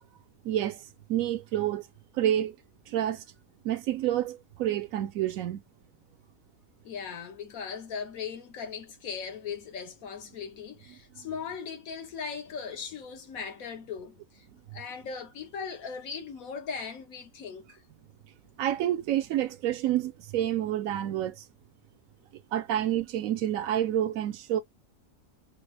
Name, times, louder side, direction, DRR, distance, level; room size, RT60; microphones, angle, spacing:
voice 1, 0.4-0.8 1.1-1.8 2.1-2.5 2.9-3.2 3.6-5.6 11.2-11.3 18.6-21.4 22.5-24.6, right 12 dB, 85° right, 1.0 m, -28 dB
voice 2, 6.8-14.4 14.7-17.8, left 6 dB, 85° left, 1.4 m, -38 dB
3.5 x 2.0 x 3.2 m
omnidirectional pair, 1.4 m